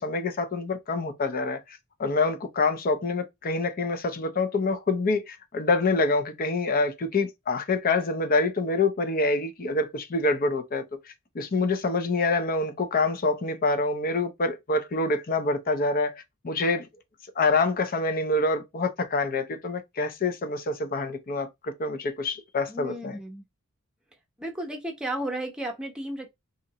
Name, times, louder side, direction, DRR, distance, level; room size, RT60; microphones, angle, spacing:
voice 1, 0.0-16.9 17.4-23.2, left 3 dB, 45° left, 0.6 m, -26 dB
voice 2, 22.7-23.4 24.4-26.3, right 1 dB, 5° right, 0.8 m, -33 dB
2.8 x 2.5 x 4.0 m
head